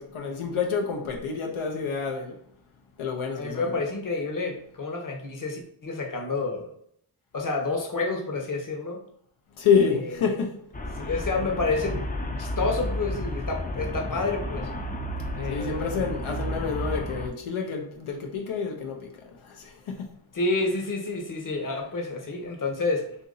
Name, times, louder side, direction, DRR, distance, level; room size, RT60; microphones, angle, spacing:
voice 1, 0.0-2.3 3.0-3.8 9.6-10.6 11.0-11.1 15.5-20.1, left 6 dB, 85° left, 0.7 m, -28 dB
voice 2, 3.3-6.7 7.3-9.0 9.9-10.0 11.0-12.0 12.4-14.7 15.3-15.9 20.3-23.0, left 3 dB, 40° left, 0.9 m, -29 dB
Traffic noise roadway noise, 10.7-17.3, left 1 dB, 20° left, 0.4 m, -32 dB
2.8 x 2.6 x 3.8 m
cardioid pair, 55°, 48 cm